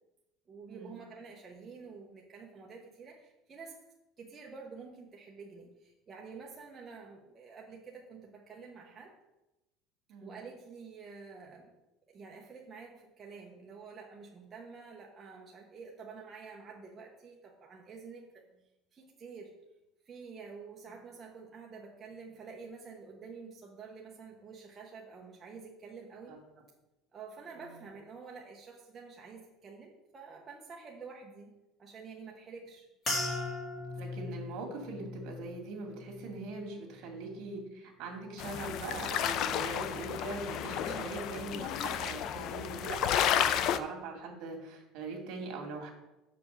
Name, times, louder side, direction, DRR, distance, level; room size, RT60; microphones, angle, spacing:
voice 1, 0.5-3.8 4.2-9.1 10.2-11.7 12.1-18.2 18.9-19.6 20.1-26.7 27.1-32.9 40.8-41.1, right 5 dB, 20° right, -2 dB, 0.8 m, -49 dB
sound 1, 33.0-37.6 37.9-38.5 39.1-39.4, left 2 dB, 25° left, 1.9 m, -40 dB
voice 2, 33.9-45.9, right 3 dB, 55° right, 2 dB, 2.1 m, -41 dB
sound 2, 38.4-43.8, left 9 dB, 50° left, 0.4 m, -32 dB
5.7 x 5.1 x 6.7 m, 0.99 s
cardioid pair, 160°, 0 cm